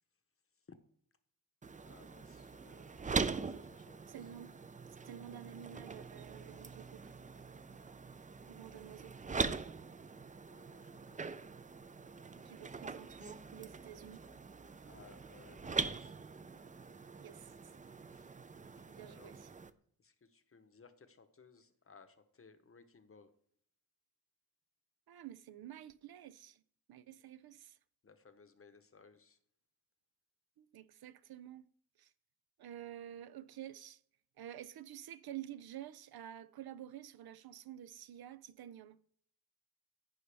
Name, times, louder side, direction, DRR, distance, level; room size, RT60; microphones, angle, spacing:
sound 1, 1.6-19.7, right 4 dB, 25° right, 0.4 m, -43 dB
voice 1, 1.8-4.2 10.5-11.2 14.8-16.1 18.1-18.3 18.7-19.4 20.0-23.3 28.0-29.4, left 5 dB, 40° left, 0.8 m, -61 dB
voice 2, 4.1-4.6 5.1-7.2 8.5-9.2 12.4-14.3 17.2-17.7 18.9-19.5 25.1-26.6 26.9-27.8 30.6-31.7 32.0-32.1 32.6-34.0 34.4-39.0, right 11 dB, 85° right, 0.5 m, -50 dB
15.0 x 5.4 x 3.4 m
wide cardioid pair, 140°, 36 cm